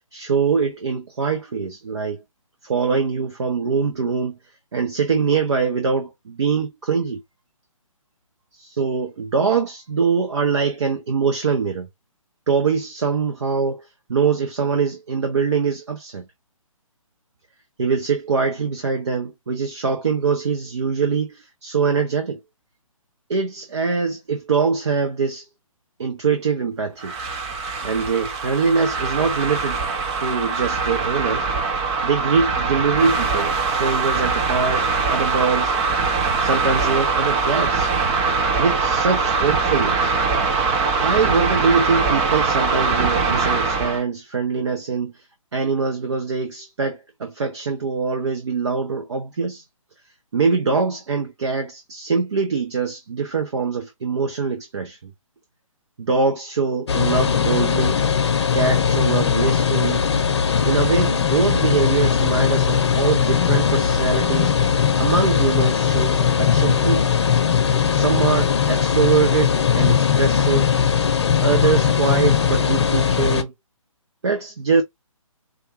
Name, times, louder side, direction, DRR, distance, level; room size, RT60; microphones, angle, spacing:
voice 1, 0.1-2.2 2.6-4.4 4.7-7.2 8.6-11.9 12.5-16.3 17.8-22.4 23.3-25.5 26.0-27.2 27.8-29.8 30.2-31.5 32.0-35.8 36.4-37.9 38.6-40.1 41.0-45.2 45.5-49.6 50.3-55.1 56.0-58.0 58.5-60.0 60.6-67.1 67.9-70.7 71.4-73.5 74.2-74.8, right 5 dB, 50° right, 0.9 m, -23 dB
sound 1, 27.0-44.0, right 4 dB, 10° right, 0.4 m, -22 dB
sound 2, 56.9-73.4, left 7 dB, 50° left, 0.8 m, -19 dB
4.8 x 2.4 x 2.9 m
figure-of-eight pair, 140°, 18 cm